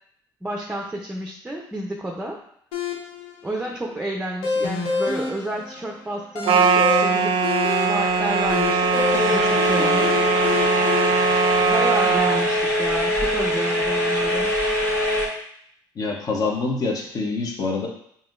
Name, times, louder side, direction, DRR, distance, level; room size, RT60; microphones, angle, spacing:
voice 1, 0.4-2.4 3.4-7.3 7.8-10.1 11.6-14.6, right 1 dB, 10° right, 0 dB, 0.5 m, -30 dB
sound 1, 2.7-11.1, left 5 dB, 85° left, 0.8 m, -29 dB
sound 2, 6.5-12.4, right 5 dB, 70° right, 0.4 m, -21 dB
sound 3, 7.6-15.3, left 1 dB, 25° left, 1.4 m, -23 dB
voice 2, 16.0-17.9, left 3 dB, 45° left, 1 dB, 0.9 m, -25 dB
5.5 x 2.7 x 2.5 m, 0.68 s
cardioid pair, 100°, 9 cm